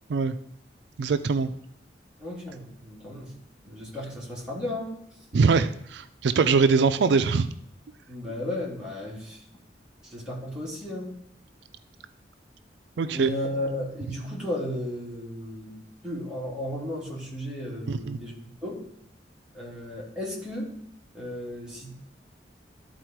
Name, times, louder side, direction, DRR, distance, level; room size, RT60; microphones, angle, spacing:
voice 1, 1.0-1.5 5.3-7.5 13.0-13.3 17.9-18.2, right 5 dB, 70° right, 11 dB, 0.4 m, -22 dB
voice 2, 2.2-3.3 3.6-4.9 5.3-5.4 8.1-9.4 10.0-11.1 13.1-15.8 16.0-18.3 18.6-18.8 19.5-20.7 21.1-21.9, left 1 dB, 5° right, -6 dB, 3.0 m, -34 dB
12.5 x 4.3 x 4.5 m, 0.74 s
head